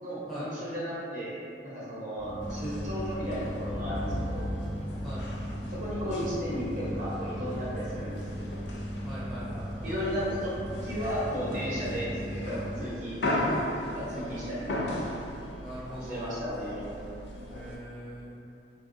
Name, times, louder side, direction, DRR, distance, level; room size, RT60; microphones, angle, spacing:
voice 1, 0.0-1.4 1.6-4.5 5.7-8.2 9.8-10.5 10.8-13.6 13.9-14.9 16.0-16.9, equal, 45° right, -8 dB, 0.9 m, -34 dB
sound 1, 2.2-12.8, equal, 75° right, 1.0 m, -37 dB
sound 2, 2.4-17.8, left 1 dB, 70° left, 0.4 m, -37 dB
voice 2, 9.0-10.1 15.6-16.3 17.5-18.4, right 1 dB, ahead, -10 dB, 0.4 m, -42 dB
3.2 x 2.3 x 2.6 m, 2.6 s
head